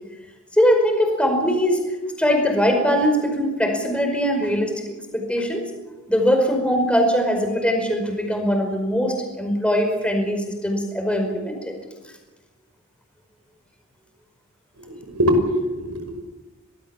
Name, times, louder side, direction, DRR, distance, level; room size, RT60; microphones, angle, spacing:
voice 1, 0.6-1.8 2.2-4.8 5.1-5.6 6.1-11.7, equal, 5° left, 3 dB, 5.0 m, -21 dB
voice 2, 14.9-16.3, equal, 80° right, 6 dB, 5.6 m, -23 dB
25.0 x 19.0 x 7.3 m, 1.2 s
head